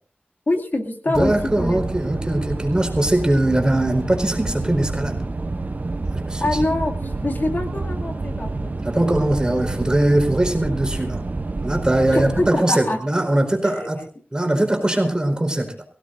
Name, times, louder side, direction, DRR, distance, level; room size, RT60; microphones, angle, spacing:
voice 1, 0.5-1.3 1.6-1.8 6.4-8.7 12.1-13.0, left 2 dB, 55° left, 2 dB, 2.4 m, -24 dB
voice 2, 1.1-5.2 6.1-6.7 8.8-11.2 11.6-14.0 14.3-15.7, right 1 dB, 20° right, 3 dB, 4.3 m, -21 dB
sound 1, 1.1-12.5, right 3 dB, 45° right, 0.7 m, -28 dB
25.0 x 17.0 x 2.6 m, 0.43 s
wide cardioid pair, 75°, 4 cm